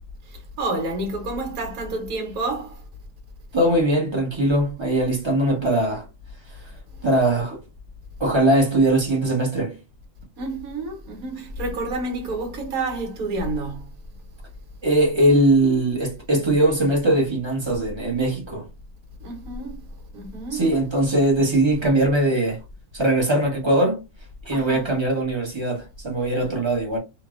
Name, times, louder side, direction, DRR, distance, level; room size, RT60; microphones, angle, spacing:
voice 1, 0.2-2.8 10.4-13.9 19.2-20.7 24.5-24.9, right 2 dB, 60° right, 1.5 m, -29 dB
voice 2, 3.5-6.0 7.0-7.6 8.2-9.8 14.8-18.7 20.5-22.6 22.9-24.0 24.4-27.0, right 1 dB, 20° right, 0.9 m, -20 dB
2.9 x 2.6 x 2.5 m
omnidirectional pair, 1.8 m